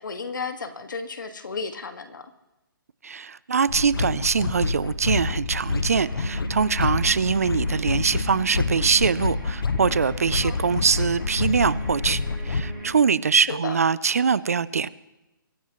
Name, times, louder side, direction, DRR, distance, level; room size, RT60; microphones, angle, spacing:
voice 1, 0.0-2.3 10.4-10.6 13.5-13.8, left 4 dB, 60° left, 8 dB, 1.7 m, -33 dB
voice 2, 3.0-14.9, right 6 dB, 45° right, 19 dB, 0.4 m, -23 dB
sound 1, 3.7-12.7, left 4 dB, 75° left, 1.2 m, -27 dB
sound 2, 5.7-12.9, right 1 dB, 10° left, 5.1 m, -38 dB
23.5 x 16.0 x 3.1 m, 0.99 s
hypercardioid pair, 175°, 12 cm